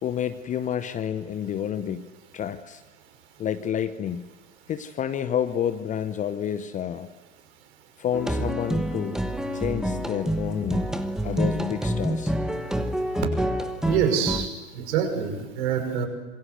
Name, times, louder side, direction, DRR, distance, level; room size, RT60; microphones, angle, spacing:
voice 1, 0.0-2.1 2.3-2.8 3.4-4.3 4.7-7.1 8.0-9.2 9.5-10.9 11.2-12.4, left 9 dB, 20° left, 11 dB, 0.9 m, -29 dB
sound 1, 8.1-14.5, right 1 dB, ahead, 1.2 m, -27 dB
voice 2, 13.8-16.1, right 7 dB, 50° right, 5 dB, 6.1 m, -26 dB
26.5 x 22.5 x 8.0 m, 1.2 s
hypercardioid pair, 110°, 41 cm